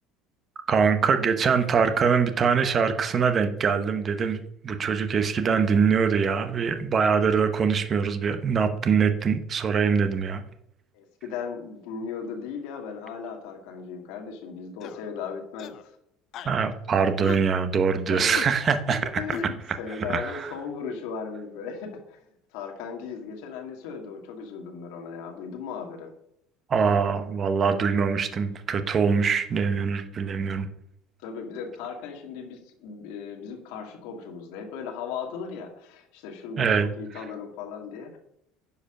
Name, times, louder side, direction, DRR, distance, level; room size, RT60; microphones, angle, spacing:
voice 1, 0.7-10.4 16.4-19.4 20.1-20.5 26.7-30.7 36.6-36.9, right 6 dB, 25° right, 9 dB, 0.8 m, -23 dB
voice 2, 10.9-15.9 18.1-22.2 22.5-26.1 31.2-38.2, left 6 dB, 70° left, 3 dB, 2.0 m, -37 dB
sound 1, 14.8-15.1 15.6-15.9 16.3-16.6 17.2-17.5 18.3-18.5 19.3-19.5, left 11 dB, 40° left, 0.5 m, -37 dB
10.0 x 4.9 x 6.4 m, 0.75 s
cardioid pair, 170°, 0 cm